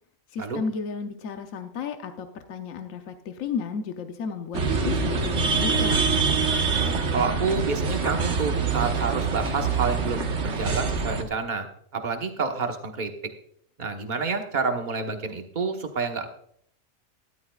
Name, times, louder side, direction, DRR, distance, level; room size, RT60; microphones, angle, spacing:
voice 1, 0.3-6.0, left 5 dB, 80° left, 6 dB, 1.2 m, -33 dB
sound 1, 4.5-11.2, right 5 dB, 60° right, 1.6 m, -25 dB
voice 2, 6.8-11.7 11.9-13.1 13.8-16.3, right 4 dB, 35° right, 4 dB, 1.3 m, -28 dB
13.0 x 12.0 x 2.4 m, 0.67 s
omnidirectional pair, 1.4 m